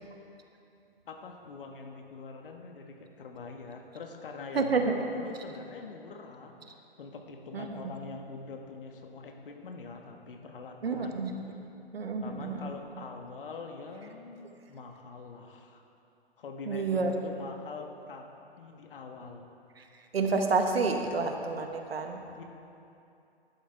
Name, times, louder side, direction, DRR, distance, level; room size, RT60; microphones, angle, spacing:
voice 1, 1.1-6.5 7.0-11.2 12.2-15.8 16.4-18.2 18.6-19.4 21.0-21.1 22.3-22.4, left 4 dB, 60° left, 3 dB, 1.5 m, -44 dB
voice 2, 4.5-5.0 7.5-7.6 10.8-11.3 11.9-12.7 16.7-17.1 19.8-19.9 20.1-22.2, right 4 dB, 70° right, 4 dB, 1.3 m, -29 dB
15.0 x 11.5 x 3.5 m, 2.7 s
figure-of-eight pair, 120°, 31 cm